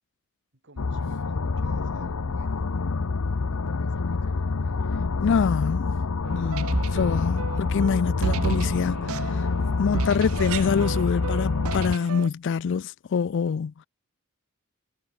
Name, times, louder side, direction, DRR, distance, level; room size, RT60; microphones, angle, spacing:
voice 1, 0.6-5.3, right 2 dB, 60° right, 2.5 m, -54 dB
sound 1, 0.8-12.0, left 4 dB, 90° left, 0.7 m, -27 dB
voice 2, 5.2-6.0 6.3-9.5 9.8-13.9, left 6 dB, 55° left, 0.4 m, -26 dB
sound 2, 6.2-12.3, right 5 dB, 80° right, 0.6 m, -32 dB
head